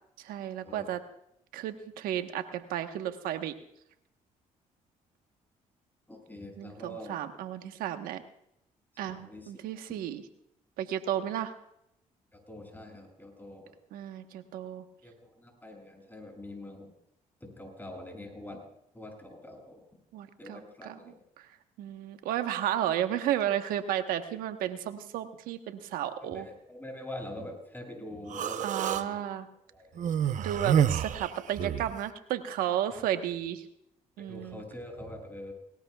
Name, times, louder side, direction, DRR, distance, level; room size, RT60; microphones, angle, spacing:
voice 1, 0.2-1.0 1.5-3.6 6.6-8.2 9.0-10.2 10.8-11.6 13.9-14.8 20.1-20.9 21.4-21.5 21.8-26.5 28.6-29.5 30.4-33.6 34.2-34.6, right 11 dB, 85° right, 8 dB, 1.2 m, -33 dB
voice 2, 6.1-7.2 9.0-9.5 12.3-13.8 15.0-16.9 17.4-18.6 18.9-19.9 20.4-21.2 26.2-29.2 29.7-29.9 30.3-30.5 32.9-33.0 34.2-35.5, left 1 dB, 15° left, 2 dB, 7.5 m, -44 dB
Human voice, 28.3-29.0 30.0-31.9, right 9 dB, 60° right, 0.8 m, -28 dB
20.0 x 19.0 x 2.4 m, 0.78 s
supercardioid pair, 65°, 15 cm